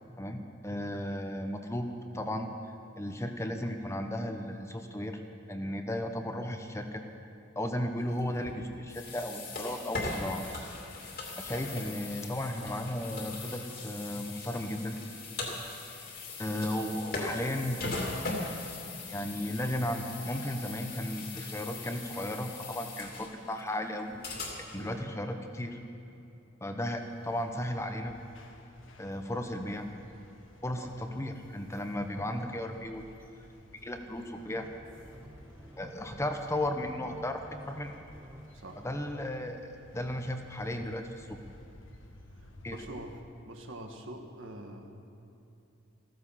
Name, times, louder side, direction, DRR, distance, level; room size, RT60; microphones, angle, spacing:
voice 1, 0.2-1.9 2.1-2.5 3.0-5.2 5.5-7.0 7.5-10.4 11.4-15.0 16.4-17.7 19.1-24.2 24.7-25.8 26.6-28.2 29.0-29.9 30.6-33.0 33.8-34.6 35.8-37.9 38.8-39.6 39.9-41.4 42.6-42.8, left 1 dB, 15° left, 5 dB, 0.9 m, -35 dB
sound 1, 8.2-25.0, left 3 dB, 50° left, 2.7 m, -40 dB
sound 2, 27.0-43.2, left 1 dB, 70° left, 1.4 m, -56 dB
sound 3, 34.3-38.5, equal, 15° right, 1.2 m, -51 dB
voice 2, 42.7-43.2 43.4-45.0, right 1 dB, 75° right, 3 dB, 1.6 m, -45 dB
15.0 x 14.5 x 5.7 m, 2.9 s
head